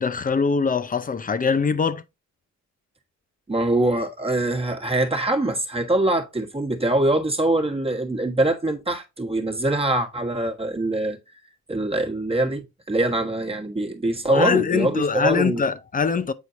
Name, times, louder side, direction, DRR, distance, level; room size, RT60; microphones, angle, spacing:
voice 1, 0.0-2.0 14.3-16.3, left 5 dB, 30° left, 0.6 m, -22 dB
voice 2, 3.5-11.2 11.7-15.6, right 2 dB, 20° right, 1.4 m, -23 dB
8.3 x 4.5 x 2.6 m
cardioid pair, 90°, 30 cm